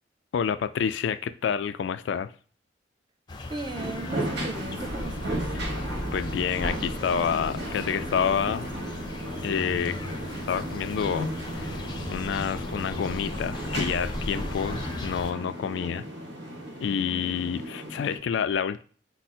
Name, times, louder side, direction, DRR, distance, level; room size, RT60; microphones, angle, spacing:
voice 1, 0.3-2.3 6.1-8.7 9.4-10.0 10.5-11.3 11.6-11.8 12.1-16.1 16.8-18.8, left 7 dB, 75° left, 0.3 m, -28 dB
sound 1, 3.3-15.3, left 1 dB, 25° left, 0.5 m, -37 dB
voice 2, 3.5-5.6 14.6-14.7 17.1-17.2, right 2 dB, 25° right, 0.5 m, -38 dB
sound 2, 3.7-18.2, right 1 dB, 85° right, 1.5 m, -35 dB
sound 3, 5.2-15.9, right 1 dB, 50° right, 1.4 m, -45 dB
4.6 x 2.1 x 4.2 m
head